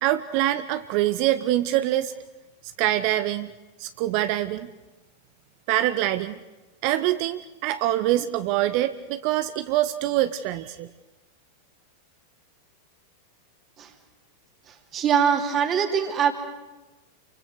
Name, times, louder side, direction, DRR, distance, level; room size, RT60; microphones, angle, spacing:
voice 1, 0.0-2.1 2.8-3.5 3.8-4.7 5.7-6.4 6.8-10.9, right 14 dB, 45° right, 12 dB, 0.8 m, -24 dB
voice 2, 14.7-16.3, right 7 dB, 30° right, 5 dB, 2.7 m, -23 dB
29.0 x 24.0 x 6.2 m, 1.1 s
figure-of-eight pair, 90°, 0 cm